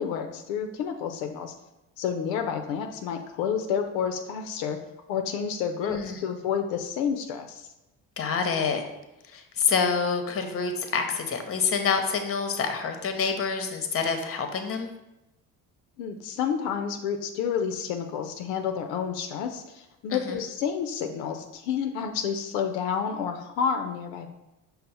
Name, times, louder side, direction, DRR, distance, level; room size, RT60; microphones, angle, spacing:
voice 1, 0.0-1.5 2.0-4.8 5.1-7.7 16.0-24.3, left 7 dB, 80° left, 5 dB, 0.5 m, -30 dB
voice 2, 5.8-6.1 8.2-8.8 9.3-14.9 20.1-20.4, left 5 dB, 35° left, 6 dB, 0.7 m, -27 dB
5.4 x 2.0 x 4.1 m, 0.94 s
supercardioid pair, 70°, 39 cm